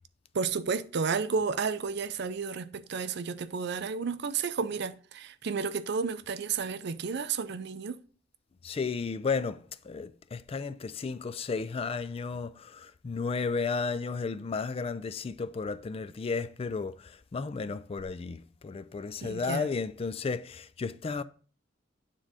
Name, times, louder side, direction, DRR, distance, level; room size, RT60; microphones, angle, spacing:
voice 1, 0.3-8.0 19.2-19.7, right 5 dB, 60° right, 0.5 m, -32 dB
voice 2, 8.6-21.2, left 4 dB, 30° left, 0.3 m, -33 dB
9.4 x 3.7 x 5.0 m
head